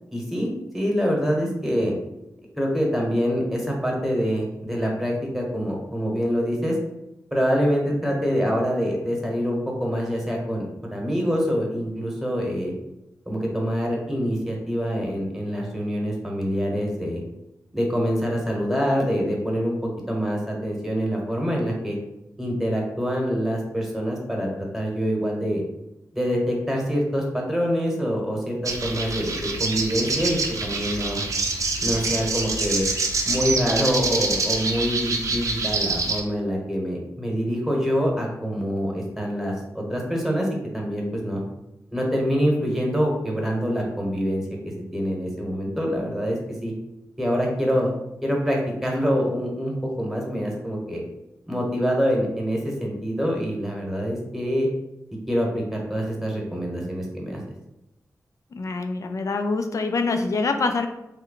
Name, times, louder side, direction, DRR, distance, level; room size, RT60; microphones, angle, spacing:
voice 1, 0.1-0.5 0.7-1.9 2.6-6.7 7.3-12.7 13.3-17.2 17.7-22.0 22.4-24.5 24.7-25.6 26.1-31.2 31.8-32.9 33.2-40.5 40.7-41.4 41.9-44.4 44.9-46.7 47.2-47.9 48.2-51.0 51.5-54.7 55.3-57.4, equal, 5° right, -2 dB, 1.0 m, -25 dB
sound 1, 28.6-36.2, right 3 dB, 65° right, 0.5 m, -26 dB
voice 2, 58.5-60.9, left 3 dB, 60° left, 6 dB, 0.4 m, -25 dB
3.2 x 2.2 x 3.8 m, 0.90 s
wide cardioid pair, 75°, 6 cm